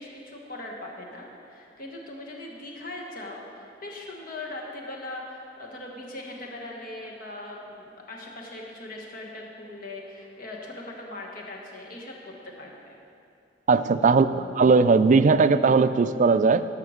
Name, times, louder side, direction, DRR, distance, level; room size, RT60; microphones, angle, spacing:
voice 1, 0.0-13.0 14.0-14.6, left 2 dB, 55° left, -1 dB, 1.4 m, -40 dB
voice 2, 13.7-14.3 14.6-16.7, right 4 dB, 45° right, 11 dB, 0.3 m, -18 dB
12.0 x 5.8 x 6.4 m, 2.6 s
head